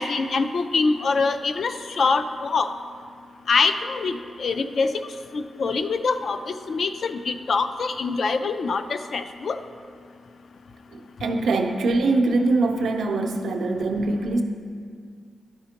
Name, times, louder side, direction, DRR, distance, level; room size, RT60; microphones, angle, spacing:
voice 1, 0.0-2.7 3.5-5.1 5.3-9.6, left 4 dB, 55° left, 9 dB, 0.3 m, -24 dB
voice 2, 10.9-14.4, right 2 dB, 90° right, 3 dB, 0.6 m, -23 dB
11.5 x 5.0 x 2.8 m, 2.1 s
wide cardioid pair, 155°, 0 cm